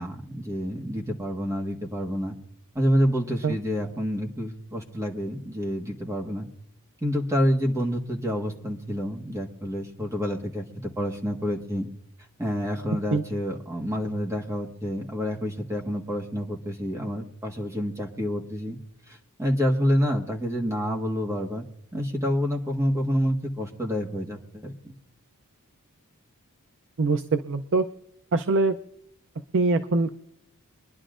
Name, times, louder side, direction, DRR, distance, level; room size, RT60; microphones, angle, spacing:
voice 1, 0.0-2.4 2.7-6.5 7.0-11.9 12.4-18.8 19.1-21.6 21.9-25.0, equal, 15° right, 0 dB, 1.5 m, -28 dB
voice 2, 27.0-27.9 28.3-28.8 29.5-30.1, right 3 dB, 55° right, 9 dB, 0.5 m, -23 dB
24.0 x 11.0 x 2.5 m, 0.75 s
head